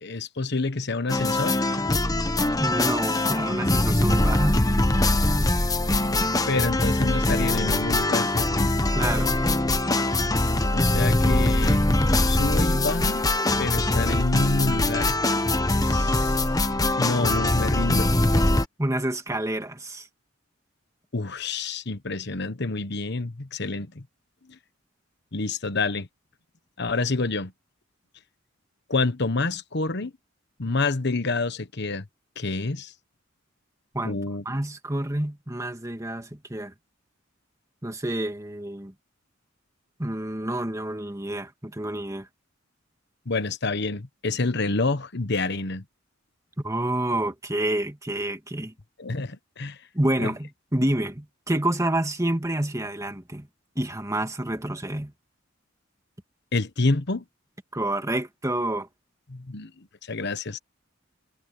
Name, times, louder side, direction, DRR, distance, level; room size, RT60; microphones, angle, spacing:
voice 1, 0.0-1.6 6.5-8.7 10.7-11.8 12.2-13.2 13.6-15.2 15.8-16.4 17.0-18.1 21.1-24.0 25.3-26.1 26.8-27.5 28.9-30.1 30.6-32.1 32.4-32.9 34.0-34.4 43.3-45.8 49.0-49.8 50.2-50.3 56.5-57.2 59.3-59.7 60.1-60.6, left 3 dB, 60° left, 1.3 m, -28 dB
sound 1, 1.1-18.7, left 1 dB, 20° left, 1.1 m, -22 dB
voice 2, 2.6-4.6 8.9-9.4 18.8-20.1 33.9-34.2 34.5-36.7 37.8-38.9 40.0-42.3 46.6-48.7 49.9-53.5 53.8-55.1 57.7-58.9, right 1 dB, 15° right, 2.0 m, -28 dB
head